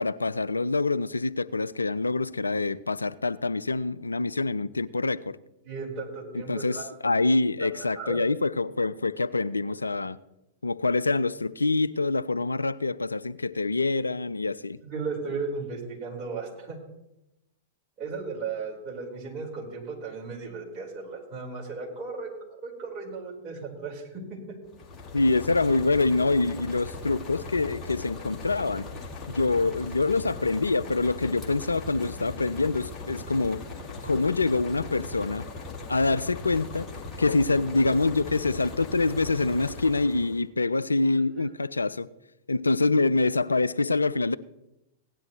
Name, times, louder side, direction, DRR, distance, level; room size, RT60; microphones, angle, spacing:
voice 1, 0.0-5.4 6.3-10.2 10.6-14.8 25.1-28.9 29.3-33.6 34.0-35.5 35.9-36.9 37.2-42.1 42.5-44.4, left 3 dB, 85° left, 0.3 m, -25 dB
voice 2, 5.6-6.9 7.6-7.7 7.9-8.2 14.8-16.8 18.0-22.3 22.6-24.6, right 4 dB, 30° right, 4.4 m, -35 dB
sound 1, 24.6-40.4, left 3 dB, 25° left, 1.8 m, -39 dB
17.0 x 10.5 x 3.2 m
figure-of-eight pair, 100°, 0 cm